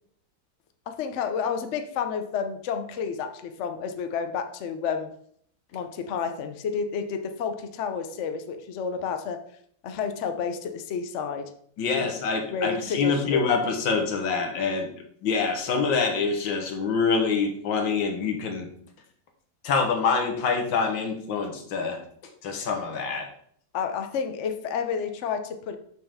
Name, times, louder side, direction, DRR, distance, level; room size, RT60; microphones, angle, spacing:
voice 1, 0.9-5.1 5.7-9.4 9.8-11.5 12.0-12.2 12.5-13.5 23.7-25.8, left 6 dB, 65° left, 7 dB, 0.7 m, -30 dB
voice 2, 11.8-14.9 15.2-18.7 19.6-22.0 22.4-23.3, left 5 dB, 80° left, 4 dB, 1.8 m, -25 dB
6.3 x 6.2 x 3.5 m, 0.64 s
omnidirectional pair, 2.1 m